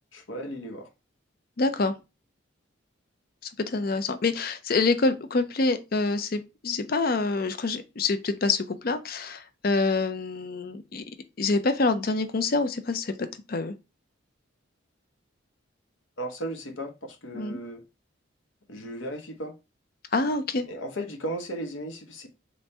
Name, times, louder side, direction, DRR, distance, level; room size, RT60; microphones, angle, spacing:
voice 1, 0.1-0.9 16.2-17.8 18.7-19.5 20.7-22.3, right 1 dB, 70° left, 0.9 m, -35 dB
voice 2, 1.6-1.9 3.7-11.0 11.4-13.7 17.3-17.6 20.1-20.6, left 3 dB, 45° left, 0.5 m, -26 dB
3.4 x 3.0 x 4.1 m
head